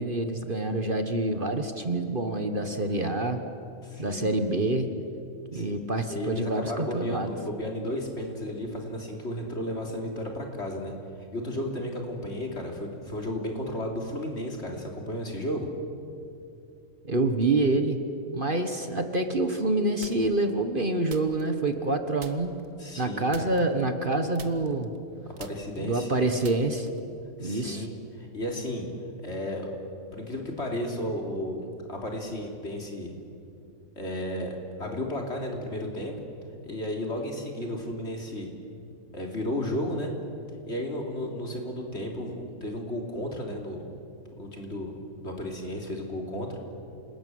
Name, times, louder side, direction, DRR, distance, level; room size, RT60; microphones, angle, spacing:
voice 1, 0.0-3.4 4.0-4.9 5.5-7.3 17.0-18.0 18.3-22.6 23.0-24.9 25.8-26.9 27.4-27.9, right 2 dB, 40° right, 6 dB, 1.6 m, -27 dB
voice 2, 3.8-4.3 5.5-5.8 6.1-10.9 11.3-15.7 22.8-23.5 25.4-26.1 27.4-27.9 28.2-28.9 29.2-29.8 30.1-33.1 34.0-36.1 36.6-38.5 39.1-40.1 40.7-43.9 44.4-44.9 45.2-46.6, left 1 dB, 50° left, 1 dB, 3.8 m, -33 dB
sound 1, 20.0-20.5 21.1-21.9 22.2-22.7 23.3-24.1 24.3-27.1, right 5 dB, 70° right, 1.7 m, -47 dB
27.5 x 20.0 x 9.4 m, 2.6 s
omnidirectional pair, 1.4 m